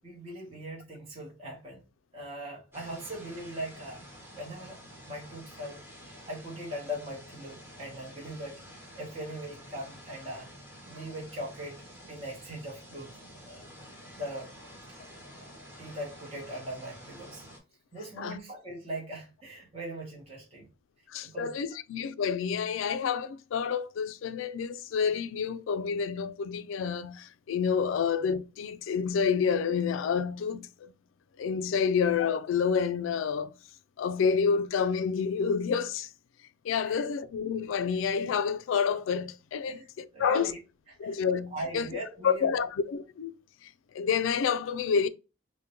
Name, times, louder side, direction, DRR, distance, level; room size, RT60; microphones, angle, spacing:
voice 1, 0.0-1.8 2.1-4.0 4.4-4.8 5.1-5.8 6.3-8.6 8.9-10.5 10.9-13.1 13.4-13.6 14.2-14.5 14.9-15.0 15.8-17.4 17.9-20.7 21.2-21.6 36.8-37.0 39.7-39.8 40.1-40.6 40.9-41.1 41.5-42.5, right 1 dB, 30° right, 0.9 m, -40 dB
sound 1, 2.7-17.6, equal, 10° right, 1.1 m, -49 dB
voice 2, 21.1-30.9 31.4-33.5 34.0-36.1 36.6-40.5 41.0-41.9 42.2-43.3 43.6-45.1, left 6 dB, 80° left, 0.3 m, -29 dB
3.6 x 2.1 x 2.8 m
head